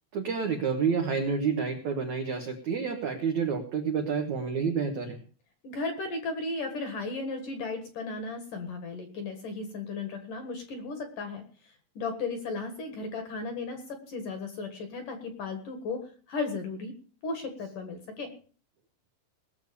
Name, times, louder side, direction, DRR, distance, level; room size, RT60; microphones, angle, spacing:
voice 1, 0.1-5.2, right 6 dB, 80° right, 4 dB, 1.6 m, -29 dB
voice 2, 5.6-16.9 17.2-18.3, left 3 dB, 60° left, 7 dB, 2.5 m, -35 dB
19.5 x 6.9 x 6.7 m, 0.41 s
omnidirectional pair, 5.5 m